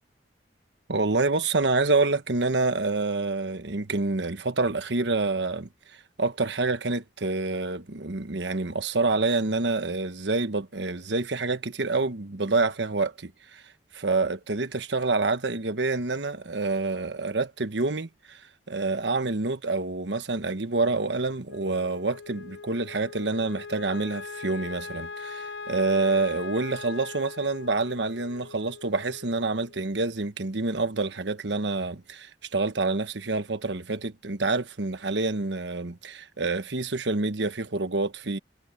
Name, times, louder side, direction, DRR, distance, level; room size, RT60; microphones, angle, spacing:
voice 1, 0.9-5.7 6.2-13.6 13.9-18.4 18.7-38.4, right 3 dB, 90° right, 1.3 m, -27 dB
Wind instrument woodwind instrument, 21.5-29.9, left 4 dB, 90° left, 1.0 m, -41 dB
head